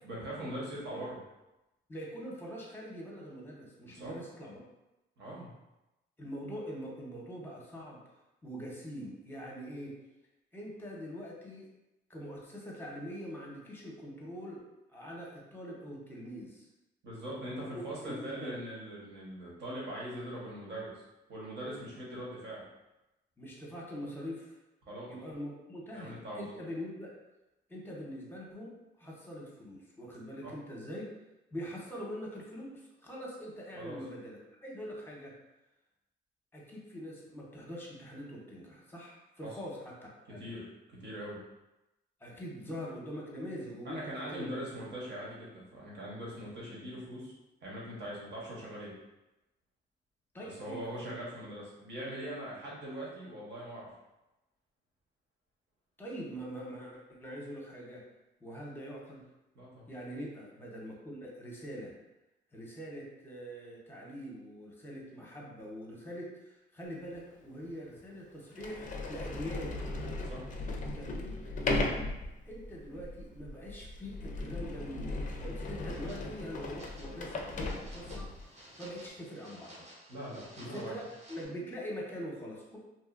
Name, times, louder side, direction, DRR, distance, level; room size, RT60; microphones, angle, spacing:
voice 1, 0.0-1.2 3.9-4.2 5.2-5.5 17.0-21.0 21.3-22.6 24.8-25.1 25.9-26.4 30.4-30.5 33.8-34.0 39.4-39.5 40.3-41.4 43.8-47.3 47.6-48.9 50.4-53.9 59.5-59.9 70.2-70.4 80.1-80.9, right 1 dB, 60° right, -5 dB, 1.1 m, -41 dB
voice 2, 1.9-4.6 6.2-8.0 8.4-10.0 10.5-11.7 12.1-14.6 14.9-16.7 17.6-18.6 23.4-24.6 25.1-27.1 27.7-28.7 29.0-31.1 31.5-35.3 36.5-39.8 40.2-40.5 42.2-44.0 44.3-44.5 50.3-51.1 56.0-58.0 58.4-59.2 59.9-61.9 62.5-69.8 70.9-72.0 72.5-78.3 78.8-79.9 80.6-81.0 81.3-82.8, equal, 10° left, -3 dB, 0.8 m, -43 dB
Sliding door, 67.1-67.2 68.0-68.1 68.5-78.4, left 2 dB, 40° left, 0.4 m, -37 dB
sound 1, 75.9-81.4, right 1 dB, 35° right, 0.8 m, -55 dB
2.7 x 2.3 x 2.4 m, 0.97 s
cardioid pair, 90°, 20 cm